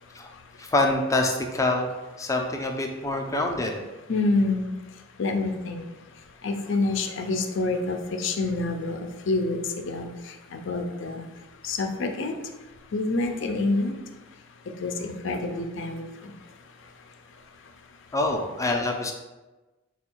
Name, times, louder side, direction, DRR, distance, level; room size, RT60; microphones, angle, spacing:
voice 1, 0.6-1.9 2.2-3.8 18.1-19.1, left 2 dB, 15° left, 2 dB, 0.5 m, -25 dB
voice 2, 4.1-4.7 5.2-5.8 6.4-9.6 9.8-10.1 10.5-11.2 11.6-12.3 12.9-13.9 14.8-16.1, left 3 dB, 65° left, 5 dB, 0.5 m, -27 dB
4.4 x 2.3 x 4.4 m, 1.1 s
head